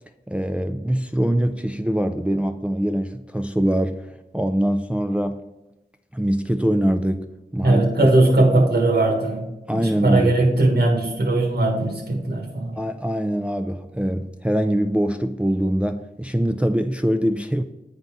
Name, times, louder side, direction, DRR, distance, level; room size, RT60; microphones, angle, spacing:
voice 1, 0.3-5.4 6.1-7.3 7.5-8.1 9.7-10.4 12.8-17.6, equal, 5° right, 7 dB, 0.4 m, -23 dB
voice 2, 7.6-12.8, right 2 dB, 90° right, -1 dB, 1.5 m, -19 dB
8.7 x 4.0 x 3.6 m, 0.97 s
wide cardioid pair, 60°, 17 cm